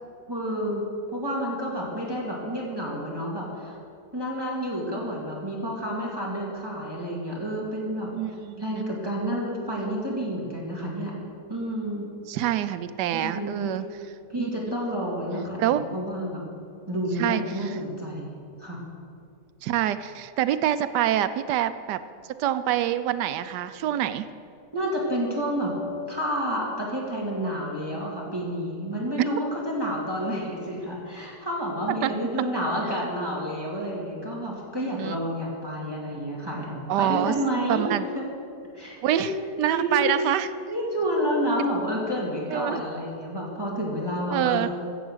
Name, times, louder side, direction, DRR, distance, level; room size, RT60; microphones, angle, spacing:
voice 1, 0.3-3.8 4.1-8.1 8.6-11.2 11.5-12.1 13.1-13.8 14.3-16.4 16.9-18.3 18.6-18.8 24.7-25.8 26.1-38.2 38.7-39.0 39.7-40.0 40.7-44.7, equal, 15° right, -4 dB, 2.2 m, -29 dB
voice 2, 8.1-8.9 12.3-13.9 14.3-14.5 15.6-15.9 17.2-17.4 19.6-22.0 22.4-24.3 32.0-32.1 32.4-32.5 34.9-35.2 36.9-37.3 37.7-38.0 39.0-39.3 39.6-40.5 42.5-42.8 44.3-44.7, right 12 dB, 85° right, 12 dB, 1.2 m, -26 dB
14.5 x 8.0 x 6.3 m, 2.3 s
omnidirectional pair, 1.8 m